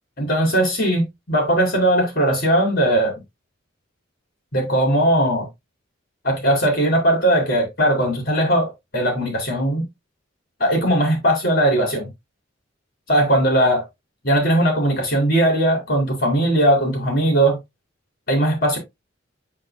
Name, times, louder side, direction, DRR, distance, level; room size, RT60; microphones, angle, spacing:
voice 1, 0.2-1.0 1.3-3.1 4.5-5.5 6.2-9.8 10.6-12.1 13.1-13.8 14.2-17.6 18.3-18.8, right 1 dB, 45° left, 3.8 m, -19 dB
7.5 x 6.3 x 2.2 m
head